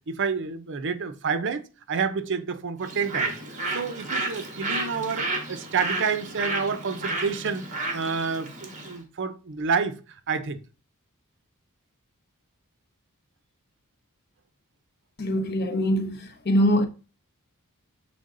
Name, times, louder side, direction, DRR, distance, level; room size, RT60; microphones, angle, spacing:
voice 1, 0.1-3.3 3.7-7.7 7.9-10.0 10.3-10.6, right 5 dB, 55° right, 0.6 m, -29 dB
Bird, 2.8-9.0, right 2 dB, 35° right, 1.4 m, -32 dB
voice 2, 15.2-16.2 16.4-16.9, equal, 45° left, 0.9 m, -22 dB
6.9 x 3.8 x 3.8 m
head